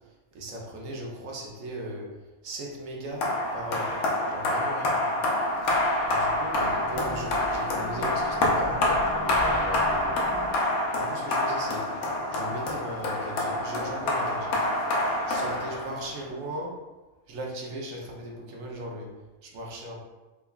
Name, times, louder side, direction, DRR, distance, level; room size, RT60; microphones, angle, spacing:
voice 1, 0.3-2.2 2.4-4.0 4.3-5.0 5.6-5.8 6.0-10.3 10.9-11.9 12.3-14.7 15.3-16.8 17.3-19.1 19.4-20.0, right 1 dB, 70° right, -2 dB, 1.1 m, -38 dB
sound 1, 3.2-16.2, left 1 dB, 85° left, 1.2 m, -27 dB
sound 2, 5.7-10.5, left 1 dB, 70° left, 0.8 m, -41 dB
4.6 x 2.3 x 2.3 m, 1.2 s
omnidirectional pair, 1.5 m